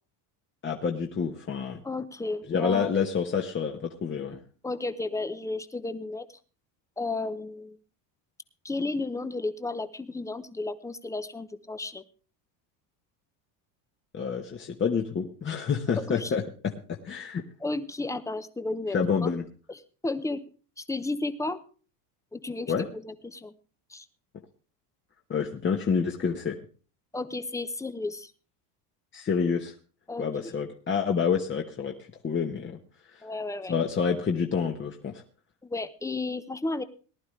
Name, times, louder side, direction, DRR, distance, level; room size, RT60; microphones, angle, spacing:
voice 1, 0.6-1.8 2.5-4.4 14.1-17.4 18.9-19.5 22.7-22.9 25.3-26.5 29.1-29.7 30.2-31.9 32.2-32.8 33.1-33.2 33.7-35.2, left 6 dB, 25° left, 2 dB, 1.1 m, -28 dB
voice 2, 1.8-2.9 4.6-6.3 7.0-7.8 8.6-12.0 16.0-16.3 17.6-19.3 19.7-19.8 20.0-20.4 20.8-21.6 22.3-23.5 23.9-24.1 27.1-28.3 30.1-30.5 33.2-33.7 35.6-36.8, left 2 dB, 5° left, 12 dB, 0.8 m, -33 dB
19.0 x 11.5 x 3.2 m, 0.36 s
supercardioid pair, 120°, 46 cm